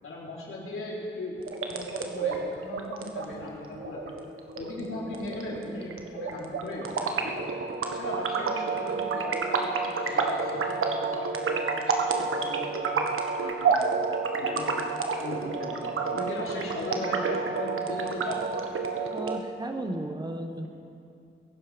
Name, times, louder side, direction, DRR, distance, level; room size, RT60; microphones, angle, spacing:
voice 1, 0.0-4.0 4.6-6.9 7.2-7.6 7.9-9.7 10.0-13.1 13.4-14.0 14.4-14.7 15.2-15.8 16.1-18.5, left 2 dB, 80° left, -4 dB, 3.9 m, -38 dB
sound 1, 1.4-19.4, right 4 dB, 85° right, 1.3 m, -30 dB
voice 2, 19.1-20.7, right 1 dB, 20° right, 5 dB, 1.1 m, -34 dB
21.5 x 11.0 x 5.1 m, 2.5 s
wide cardioid pair, 165°, 21 cm